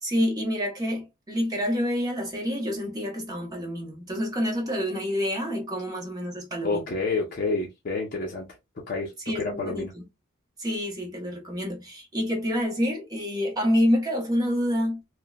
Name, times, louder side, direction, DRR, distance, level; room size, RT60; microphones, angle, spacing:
voice 1, 0.0-6.8 9.3-10.0 10.6-15.0, equal, 20° right, 0.8 m, -27 dB
voice 2, 6.6-8.5 8.9-9.9, left 3 dB, 40° left, 0.6 m, -29 dB
3.0 x 2.1 x 2.2 m
head